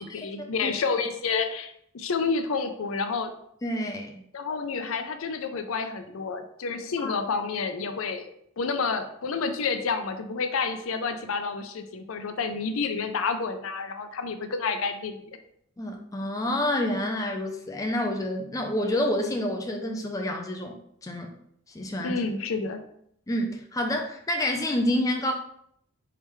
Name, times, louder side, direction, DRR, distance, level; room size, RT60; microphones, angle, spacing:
voice 1, 0.0-3.3 4.3-8.3 8.6-15.2 22.0-22.8, left 5 dB, 75° left, 8 dB, 0.5 m, -29 dB
voice 2, 3.6-4.2 7.0-7.1 15.8-21.3 21.7-22.2 23.3-25.3, left 1 dB, 15° left, 2 dB, 0.4 m, -28 dB
4.9 x 3.3 x 3.1 m, 0.69 s
head